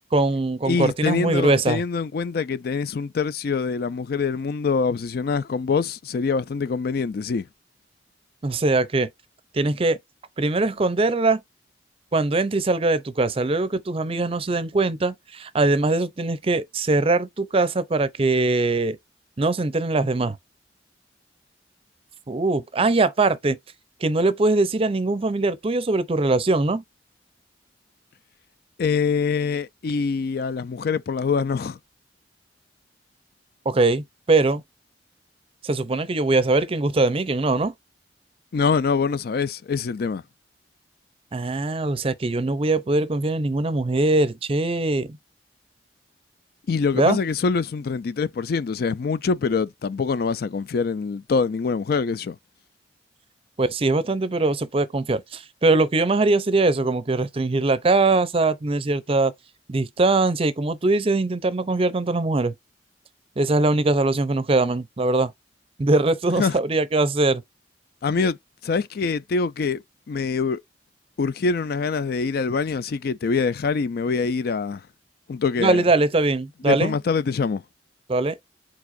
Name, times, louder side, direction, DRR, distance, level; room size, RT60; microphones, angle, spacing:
voice 1, 0.1-1.8 8.4-9.1 9.5-10.0 10.4-11.4 12.1-19.0 19.4-20.4 22.3-23.6 24.0-26.8 33.7-34.6 35.6-37.7 41.3-45.2 46.9-47.2 53.6-59.3 59.7-62.5 63.4-65.3 65.8-67.4 75.6-76.9 78.1-78.4, right 2 dB, 30° right, 0.5 m, -21 dB
voice 2, 0.7-7.5 28.8-31.8 38.5-40.2 46.7-52.4 66.4-66.6 68.0-68.4 68.6-69.8 70.1-70.6 71.2-74.8 75.3-75.8 76.7-77.6, left 5 dB, 60° left, 0.4 m, -24 dB
4.8 x 4.4 x 2.5 m
head